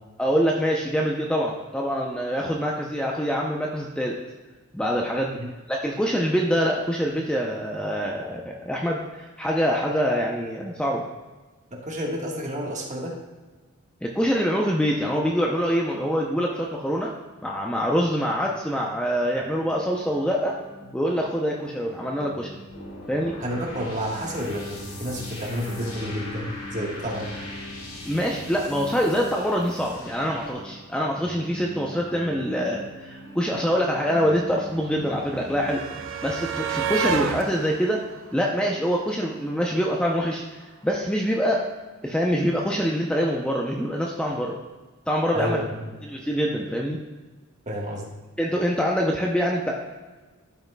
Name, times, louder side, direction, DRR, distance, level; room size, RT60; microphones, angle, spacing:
voice 1, 0.2-4.2 4.7-5.4 5.7-11.0 14.0-17.1 17.4-20.6 20.9-22.5 23.1-23.4 28.0-35.8 36.2-38.0 38.3-40.4 40.8-41.7 42.0-44.6 45.1-45.6 46.0-47.0 48.4-49.7, equal, 5° left, -2 dB, 0.5 m, -25 dB
voice 2, 11.7-13.2 23.4-27.3 45.3-45.9 47.7-48.1, equal, 35° right, -1 dB, 1.3 m, -30 dB
sound 1, 19.4-35.9, equal, 55° left, 2.5 m, -43 dB
sound 2, 22.7-30.5, left 2 dB, 80° left, 1.6 m, -41 dB
sound 3, 32.9-33.0 33.1-39.3 40.5-40.6 40.9-41.0, right 5 dB, 65° right, 0.4 m, -32 dB
13.0 x 5.6 x 2.2 m, 1.3 s
head